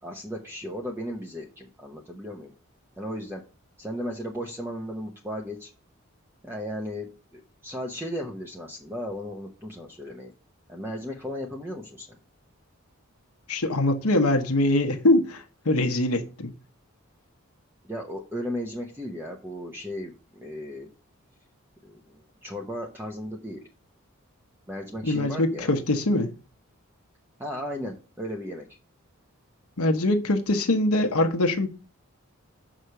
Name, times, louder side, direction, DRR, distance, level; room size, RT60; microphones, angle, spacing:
voice 1, 0.0-2.5 3.0-3.4 3.8-5.7 6.4-10.3 10.7-12.2 17.8-20.9 21.8-23.6 24.7-25.7 27.4-28.7, equal, 10° right, 0.9 m, -35 dB
voice 2, 13.5-16.5 25.0-26.3 29.8-31.7, left 1 dB, 85° left, 1.0 m, -23 dB
6.3 x 4.9 x 6.7 m
head